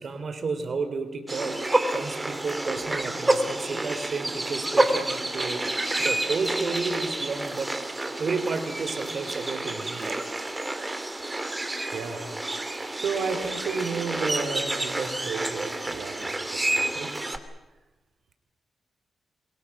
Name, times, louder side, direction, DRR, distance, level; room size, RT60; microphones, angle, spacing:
voice 1, 0.0-1.6 1.9-7.7 8.2-10.2 11.8-12.3, right 4 dB, 55° right, 9 dB, 3.3 m, -32 dB
sound 1, 1.3-17.4, right 2 dB, 20° right, 2.3 m, -29 dB
voice 2, 11.9-12.2 12.7-17.1, right 5 dB, 80° right, 6 dB, 3.8 m, -32 dB
27.5 x 23.0 x 6.0 m, 1.1 s
cardioid pair, 70°, 0 cm